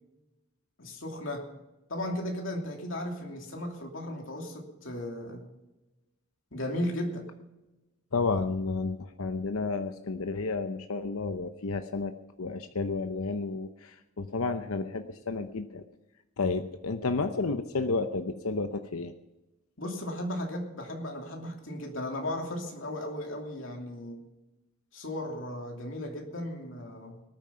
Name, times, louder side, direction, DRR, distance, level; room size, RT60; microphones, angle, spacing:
voice 1, 0.8-1.6 1.9-5.5 6.5-7.3 19.8-24.2 24.9-27.2, left 1 dB, 65° left, 1 dB, 2.8 m, -36 dB
voice 2, 8.1-15.8 16.4-19.1, left 3 dB, 85° left, 8 dB, 0.8 m, -31 dB
19.0 x 9.3 x 5.7 m, 1.0 s
head